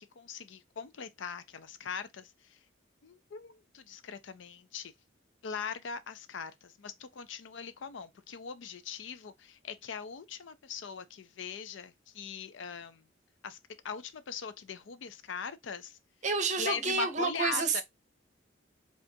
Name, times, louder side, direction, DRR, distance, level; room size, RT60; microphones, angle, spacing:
voice 1, 0.0-2.6 3.0-4.9 5.4-13.0 13.4-13.6 13.8-16.0 16.6-17.8, left 6 dB, 70° left, 0.5 m, -40 dB
voice 2, 16.2-17.8, right 4 dB, 40° right, 0.7 m, -29 dB
5.0 x 2.4 x 2.6 m
head